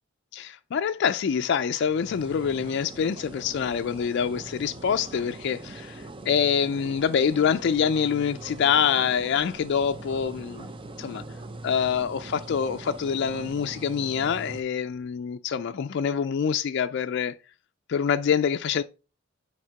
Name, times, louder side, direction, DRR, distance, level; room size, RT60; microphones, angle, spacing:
voice 1, 0.3-10.7 11.0-11.2 11.6-17.4 17.9-18.8, left 7 dB, 60° left, 0.3 m, -26 dB
sound 1, 1.9-14.6, right 2 dB, 25° right, 0.6 m, -42 dB
6.4 x 3.5 x 5.7 m
head